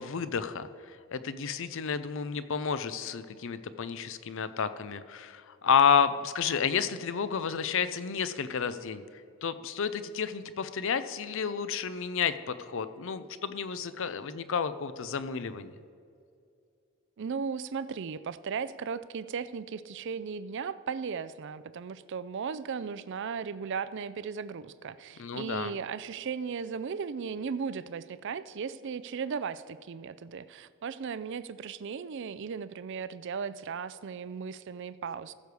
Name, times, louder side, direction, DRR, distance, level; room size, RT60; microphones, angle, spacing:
voice 1, 0.0-9.0 9.4-15.7 25.2-25.8, left 6 dB, 60° left, 13 dB, 0.5 m, -30 dB
voice 2, 17.2-35.3, right 6 dB, 55° right, 15 dB, 0.4 m, -36 dB
15.0 x 6.8 x 4.8 m, 2.4 s
head